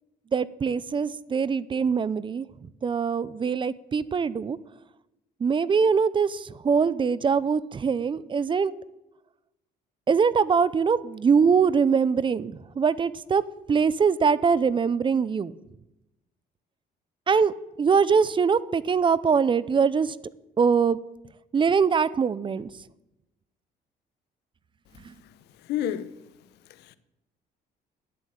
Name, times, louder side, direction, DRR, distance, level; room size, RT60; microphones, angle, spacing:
voice 1, 0.3-2.5 2.8-4.6 5.4-8.7 10.1-13.4 13.7-15.5 17.3-20.2 20.6-21.0 21.5-22.7, right 6 dB, 30° right, 0.6 m, -23 dB
voice 2, 25.6-26.1 26.8-27.0, left 10 dB, 80° left, 1.0 m, -29 dB
11.5 x 10.5 x 8.8 m
cardioid pair, 110°, 17 cm